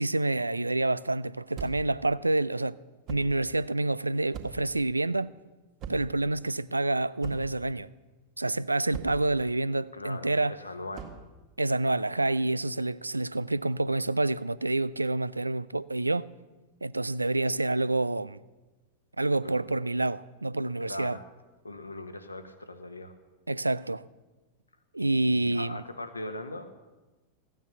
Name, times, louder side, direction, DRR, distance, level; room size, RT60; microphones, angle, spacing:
voice 1, 0.0-2.8 3.1-5.3 5.9-7.9 8.4-10.6 11.6-16.3 16.8-18.4 19.2-21.2 23.5-24.0 24.9-25.8, right 2 dB, 80° right, 0.4 m, -28 dB
sound 1, 1.5-2.0 3.1-3.4 4.3-4.7 5.8-6.2 7.2-7.6 8.9-9.3 10.9-11.3, right 6 dB, 35° right, 1.9 m, -40 dB
voice 2, 9.9-11.1 19.4-19.6 20.9-21.2 21.6-23.1 25.0-26.7, left 2 dB, 80° left, 1.1 m, -40 dB
15.0 x 9.4 x 7.0 m
figure-of-eight pair, 90°, 0 cm